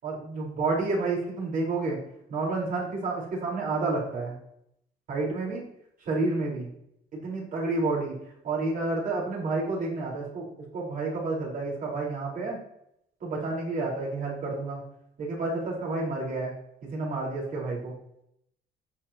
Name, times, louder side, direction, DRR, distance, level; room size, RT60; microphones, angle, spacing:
voice 1, 0.0-2.0 2.3-4.3 5.1-5.6 6.1-6.7 7.1-8.1 8.4-10.5 10.7-12.6 13.2-14.8 15.2-16.5 16.9-17.9, right 3 dB, 55° right, -3 dB, 5.1 m, -30 dB
19.0 x 7.6 x 3.1 m, 0.75 s
cardioid pair, 110°, 17 cm